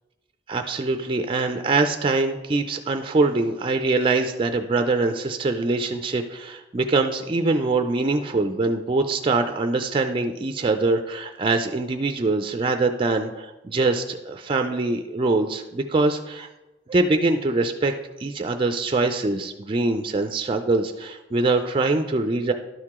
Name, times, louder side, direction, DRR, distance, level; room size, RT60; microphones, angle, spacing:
voice 1, 0.5-16.5 16.9-17.9 18.2-22.5, right 3 dB, 30° right, 6 dB, 0.4 m, -23 dB
11.5 x 4.7 x 3.6 m, 1.0 s
head